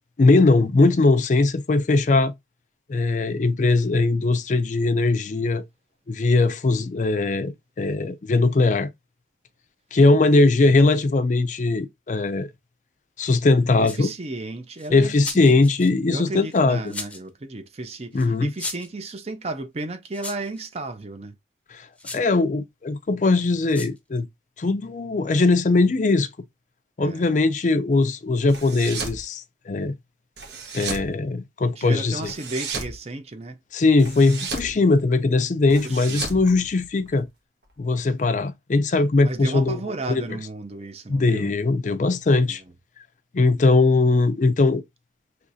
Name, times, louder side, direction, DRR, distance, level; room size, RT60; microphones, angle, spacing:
voice 1, 0.2-2.3 2.9-5.6 6.1-8.9 9.9-12.5 13.2-14.1 14.9-16.8 18.1-18.5 22.1-24.3 24.6-26.3 27.0-29.9 30.7-32.1 33.7-37.3 37.8-39.8 40.1-40.2 41.1-42.6 43.3-44.8, left 3 dB, 45° left, 0.4 m, -20 dB
sound 1, 13.8-14.2 14.8-15.9 16.5-17.3 18.2-18.3 18.5-18.9 20.1-20.6 22.0-22.3 23.7-24.0, left 3 dB, 10° left, 0.7 m, -36 dB
voice 2, 13.8-15.6 16.1-21.4 27.0-27.2 31.8-33.6 35.7-36.3 39.2-41.5 42.4-42.6, right 2 dB, 35° right, 0.5 m, -34 dB
sound 2, 28.5-29.2 30.4-31.1 32.2-33.0 34.0-34.7 35.7-37.2, right 4 dB, 75° right, 1.3 m, -33 dB
6.1 x 3.1 x 2.6 m
head